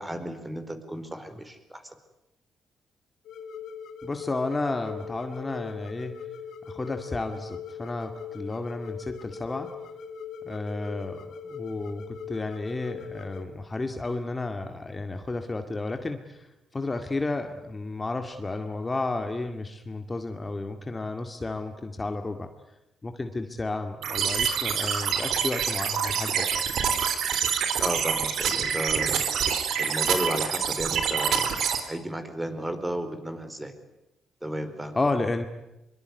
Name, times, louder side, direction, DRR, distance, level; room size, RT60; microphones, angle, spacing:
voice 1, 0.0-1.9 27.8-29.2 29.8-31.5 31.8-33.7 34.4-35.0, right 1 dB, 15° right, 9 dB, 4.6 m, -33 dB
sound 1, 3.3-13.5, left 6 dB, 75° left, 2.4 m, -40 dB
voice 2, 4.0-6.3 6.6-9.7 10.4-22.5 23.0-26.6 35.0-35.5, left 2 dB, 20° left, 6 dB, 2.2 m, -32 dB
sound 2, 24.0-31.8, right 7 dB, 75° right, 3.6 m, -26 dB
24.0 x 23.5 x 9.5 m, 0.91 s
cardioid pair, 90°, 0 cm